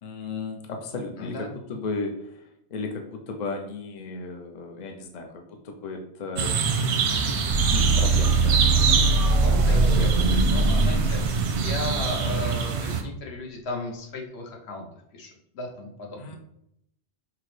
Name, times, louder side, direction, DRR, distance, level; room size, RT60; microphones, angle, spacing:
voice 1, 0.0-6.6 7.7-9.2 9.7-9.8 16.2-16.4, left 3 dB, 50° left, 4 dB, 0.6 m, -35 dB
voice 2, 1.2-1.5 9.2-11.2 11.5-14.9 15.1-16.4, left 2 dB, 75° left, 0 dB, 1.1 m, -35 dB
sound 1, 6.4-13.0, right 5 dB, 90° right, 0.9 m, -25 dB
sound 2, 7.5-12.4, right 2 dB, 45° right, 0.5 m, -22 dB
5.7 x 2.0 x 3.2 m, 0.77 s
omnidirectional pair, 1.1 m